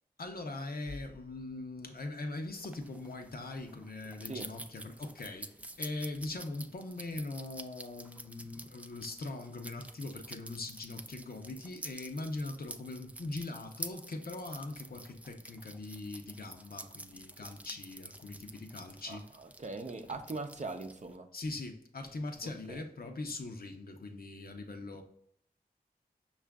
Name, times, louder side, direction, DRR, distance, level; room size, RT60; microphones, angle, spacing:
voice 1, 0.2-19.2 21.3-25.0, left 2 dB, 60° left, 5 dB, 0.7 m, -41 dB
sound 1, 2.5-21.2, right 1 dB, 10° right, 0.3 m, -49 dB
voice 2, 19.1-21.3 22.4-22.8, right 3 dB, 45° right, 5 dB, 0.6 m, -41 dB
5.6 x 2.4 x 3.5 m, 0.72 s
cardioid pair, 40°, 17 cm